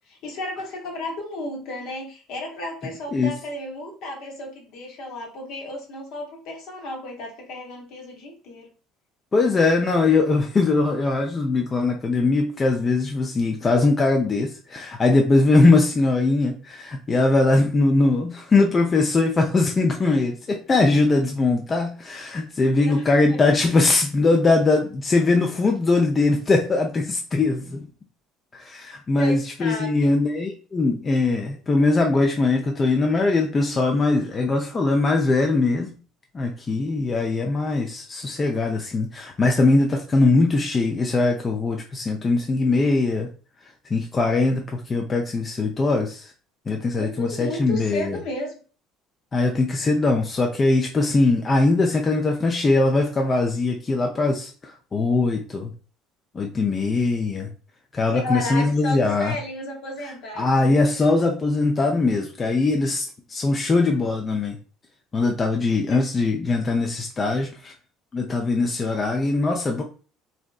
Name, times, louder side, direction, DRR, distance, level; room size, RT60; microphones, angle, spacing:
voice 1, 0.1-8.7 22.8-23.0 23.3-23.4 29.2-30.2 46.9-48.6 58.1-60.7, left 2 dB, 65° left, 1 dB, 0.8 m, -33 dB
voice 2, 9.3-27.9 28.5-35.9 36.3-43.3 43.9-46.3 46.7-48.2 49.3-55.7 56.3-57.5 57.9-59.3 60.3-64.6 65.1-67.7 68.1-69.8, left 3 dB, 30° left, 2 dB, 0.4 m, -21 dB
2.6 x 2.1 x 2.3 m, 0.37 s
hypercardioid pair, 60°, 0 cm